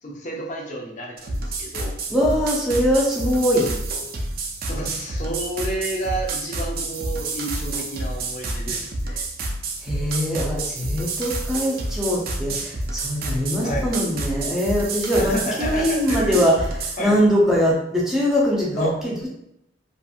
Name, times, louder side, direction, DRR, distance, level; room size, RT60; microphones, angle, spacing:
voice 1, 0.0-2.0 4.7-9.3 13.6-13.9 15.1-16.4 17.0-17.2 18.8-19.0, right 1 dB, 40° left, -2 dB, 0.6 m, -30 dB
sound 1, 1.2-17.0, right 2 dB, 50° right, 0.4 m, -29 dB
voice 2, 2.1-3.7 9.8-16.5 17.0-19.3, equal, 5° right, -5 dB, 0.6 m, -22 dB
2.8 x 2.6 x 2.4 m, 0.78 s
head